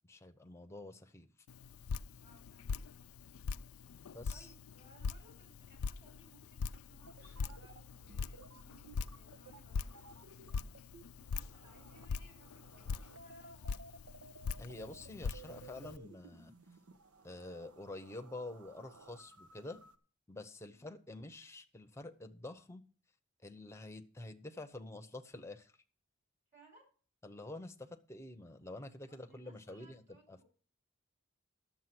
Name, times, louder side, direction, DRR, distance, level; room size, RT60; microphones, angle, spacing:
voice 1, 0.0-1.3 4.1-4.5 14.6-16.5 17.2-19.8 20.3-22.8 23.4-25.7 27.2-30.0 30.3-30.4, left 2 dB, 15° left, 6 dB, 0.7 m, -48 dB
Drip, 1.5-16.0, left 5 dB, 85° left, 0.4 m, -43 dB
voice 2, 2.2-2.8 4.3-13.8 20.7-20.9 26.5-26.8 29.1-30.4, right 2 dB, 35° right, -1 dB, 5.5 m, -65 dB
sound 1, 7.0-20.0, right 3 dB, 90° right, 1.0 m, -58 dB
11.0 x 7.3 x 6.0 m, 0.41 s
head